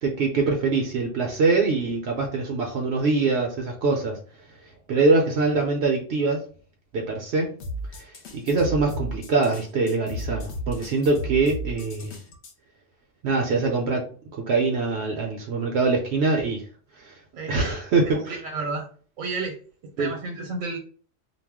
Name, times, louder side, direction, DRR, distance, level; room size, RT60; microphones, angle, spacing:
voice 1, 0.0-4.2 4.9-6.4 6.9-7.5 8.0-8.1 8.3-12.2 13.2-14.1 14.4-16.6 17.0-17.1 17.5-18.4 20.0-20.1, right 3 dB, 65° right, 1 dB, 0.8 m, -23 dB
sound 1, 7.6-12.5, equal, 65° left, 0.8 m, -34 dB
voice 2, 17.3-17.7 18.1-18.9 19.2-19.6 20.0-20.8, right 3 dB, 80° right, 1 dB, 1.0 m, -31 dB
2.3 x 2.1 x 3.4 m, 0.41 s
omnidirectional pair, 1.3 m